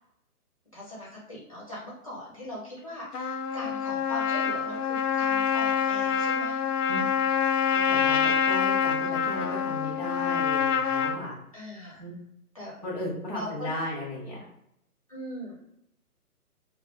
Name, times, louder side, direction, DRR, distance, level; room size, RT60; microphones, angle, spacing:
voice 1, 0.7-6.6 9.7-10.4 11.5-12.0 12.5-12.8 13.3-13.7 15.1-15.6, left 1 dB, 25° left, -6 dB, 0.5 m, -40 dB
Trumpet, 3.1-11.2, left 7 dB, 75° left, 0.5 m, -26 dB
voice 2, 7.7-11.4 12.0-12.2 12.8-14.4, left 1 dB, 30° right, -5 dB, 0.4 m, -35 dB
2.2 x 2.0 x 3.0 m, 0.77 s
hypercardioid pair, 155°, 46 cm